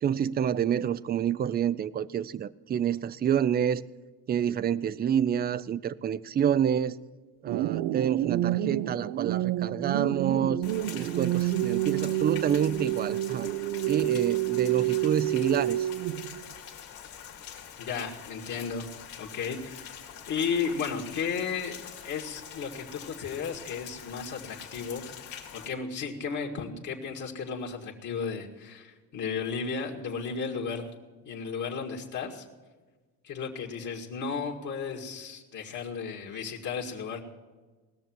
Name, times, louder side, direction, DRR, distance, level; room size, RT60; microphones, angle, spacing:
voice 1, 0.0-3.8 4.3-7.0 7.4-10.6 10.9-13.5 13.9-15.9, right 9 dB, 25° right, 19 dB, 0.4 m, -28 dB
sound 1, 7.5-16.4, right 14 dB, 75° right, 0.7 m, -28 dB
Rain, 10.6-25.7, left 8 dB, 75° left, 2.3 m, -45 dB
voice 2, 17.8-18.9 19.2-21.8 22.0-25.1 25.5-30.9 31.3-32.5 33.2-37.2, left 5 dB, 50° left, -1 dB, 2.0 m, -34 dB
19.5 x 6.8 x 7.5 m, 1.3 s
cardioid pair, 110°, 37 cm